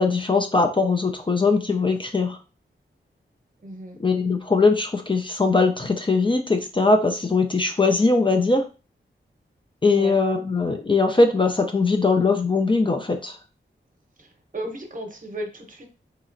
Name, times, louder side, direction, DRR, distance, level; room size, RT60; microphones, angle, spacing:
voice 1, 0.0-2.4 4.0-8.6 9.8-13.4, left 3 dB, 25° left, 5 dB, 0.4 m, -21 dB
voice 2, 3.6-4.0 9.9-10.2 14.2-15.9, right 1 dB, 45° right, 3 dB, 0.8 m, -35 dB
4.1 x 2.8 x 2.5 m, 0.32 s
wide cardioid pair, 115°, 20 cm